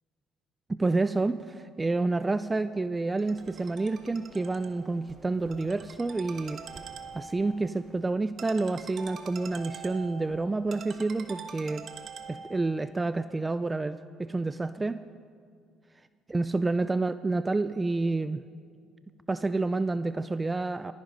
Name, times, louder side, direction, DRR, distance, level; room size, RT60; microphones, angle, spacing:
voice 1, 0.8-6.6 7.1-11.8 12.3-15.0 16.3-18.4 19.3-20.9, right 3 dB, 20° right, 13 dB, 0.4 m, -29 dB
Ringtone, 3.2-12.7, right 6 dB, 50° right, 1.3 m, -45 dB
20.5 x 10.5 x 5.3 m, 2.3 s
supercardioid pair, 80°, 0 cm